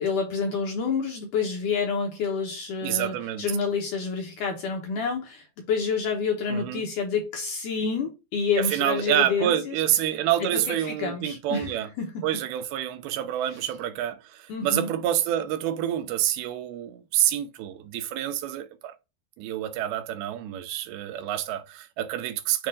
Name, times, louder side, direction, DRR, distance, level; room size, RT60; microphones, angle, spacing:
voice 1, 0.0-9.8 10.5-12.2 14.5-14.9, left 5 dB, 70° left, 2.1 m, -28 dB
voice 2, 2.8-3.5 6.5-6.8 8.6-11.9 12.2-18.9 19.4-22.7, right 11 dB, 80° right, 2.5 m, -27 dB
7.6 x 2.6 x 5.3 m
omnidirectional pair, 4.8 m